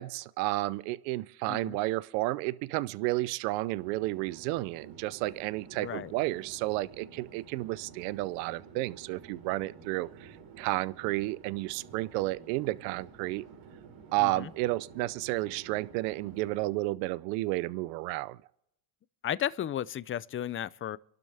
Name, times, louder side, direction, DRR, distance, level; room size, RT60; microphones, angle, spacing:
voice 1, 0.0-13.4 14.1-18.4, right 19 dB, 85° right, 0.7 m, -32 dB
Chatter / Fixed-wing aircraft airplane, 3.5-16.9, right 5 dB, 60° right, 4.2 m, -51 dB
voice 2, 5.8-6.1 14.2-14.5 19.2-21.0, left 10 dB, 25° left, 0.5 m, -34 dB
30.0 x 12.0 x 3.4 m
supercardioid pair, 100°, 48 cm